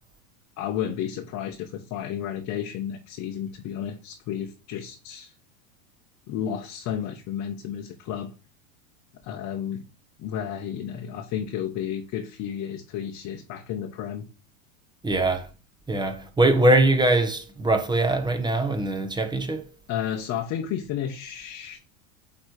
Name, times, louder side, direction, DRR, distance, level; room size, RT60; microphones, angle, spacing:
voice 1, 0.6-5.3 6.3-8.3 9.2-9.8 10.2-14.3 19.9-21.8, left 9 dB, 40° left, 1.0 m, -32 dB
voice 2, 15.0-15.5 15.9-19.6, right 2 dB, 10° right, 1.0 m, -22 dB
8.7 x 3.2 x 4.8 m
supercardioid pair, 125°, 43 cm